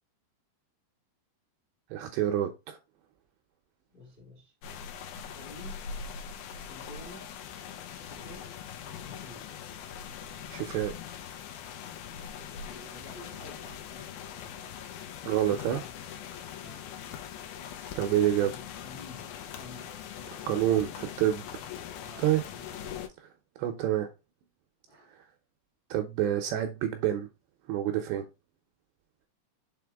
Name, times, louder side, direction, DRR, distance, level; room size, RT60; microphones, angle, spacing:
voice 1, 1.9-2.8 10.5-10.9 15.2-16.5 18.0-18.5 20.5-21.5 22.2-22.4 23.2-23.3 23.6-24.1 25.1-25.3 25.9-27.3 27.6-28.3, right 11 dB, 80° right, 2.7 m, -28 dB
voice 2, 3.9-4.5 5.1-5.9 6.6-7.4 7.9-8.6 8.9-9.6 12.2-14.7 16.6-16.9 18.4-18.6 18.8-20.6 22.0-23.1 24.9-25.1, left 2 dB, 20° left, 1.4 m, -51 dB
sound 1, 4.6-23.1, left 8 dB, 80° left, 2.1 m, -42 dB
6.9 x 4.4 x 3.4 m
omnidirectional pair, 5.5 m